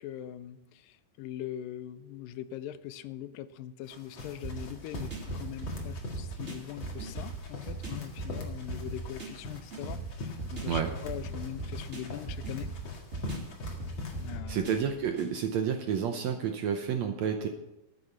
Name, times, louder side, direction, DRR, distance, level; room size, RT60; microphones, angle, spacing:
voice 1, 0.0-12.7 14.2-15.0, left 12 dB, 85° left, 14 dB, 2.3 m, -42 dB
sound 1, 3.8-14.4, left 3 dB, 40° left, 2.2 m, -43 dB
sound 2, 4.4-15.3, right 2 dB, 20° right, 2.3 m, -39 dB
voice 2, 14.5-17.5, right 7 dB, 70° right, 5 dB, 1.7 m, -30 dB
13.5 x 8.5 x 5.9 m, 0.92 s
omnidirectional pair, 4.0 m